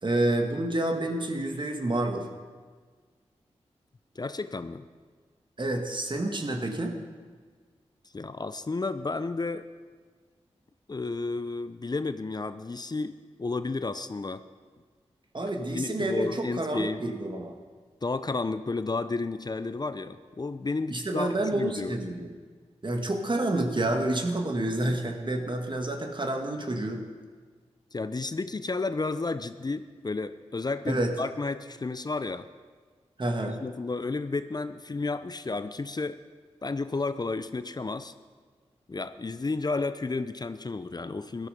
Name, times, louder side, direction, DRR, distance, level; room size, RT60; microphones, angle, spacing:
voice 1, 0.0-2.3 5.6-7.0 15.3-17.5 20.9-22.3 22.8-27.0 30.9-31.1 33.2-33.6, right 1 dB, 45° right, 4 dB, 2.1 m, -29 dB
voice 2, 4.2-4.8 8.1-9.7 10.9-14.4 15.7-17.1 18.0-22.0 27.9-32.5 33.4-36.2 36.6-38.1 38.9-41.5, left 3 dB, 35° left, 12 dB, 0.6 m, -32 dB
16.0 x 12.5 x 5.2 m, 1.5 s
cardioid pair, 45°, 12 cm